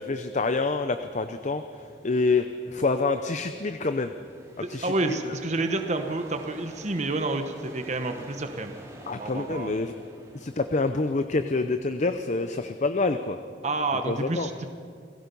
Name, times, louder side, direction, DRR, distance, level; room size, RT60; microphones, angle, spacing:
voice 1, 0.0-1.6 2.0-4.1 4.7-5.3 9.1-10.0 10.3-13.4 14.1-14.5, left 3 dB, 40° left, 9 dB, 0.7 m, -27 dB
sound 1, 0.7-10.9, right 1 dB, 15° right, 2.5 m, -50 dB
voice 2, 4.6-8.7 9.2-9.8 13.6-14.7, right 2 dB, 40° right, 6 dB, 1.0 m, -29 dB
28.5 x 17.5 x 5.4 m, 2.3 s
head